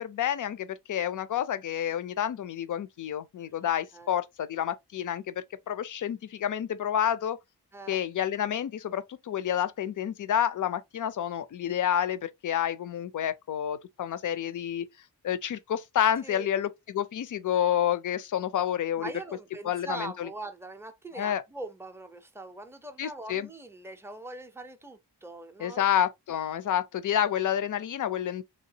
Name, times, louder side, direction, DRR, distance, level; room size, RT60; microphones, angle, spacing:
voice 1, 0.0-5.3 5.7-7.4 7.9-14.9 15.2-19.1 19.6-20.3 21.1-21.4 23.0-23.5 25.6-28.4, left 10 dB, 50° left, 0.4 m, -29 dB
voice 2, 19.0-25.8, right 2 dB, 5° right, 0.4 m, -42 dB
3.5 x 2.8 x 2.7 m
wide cardioid pair, 165°, 41 cm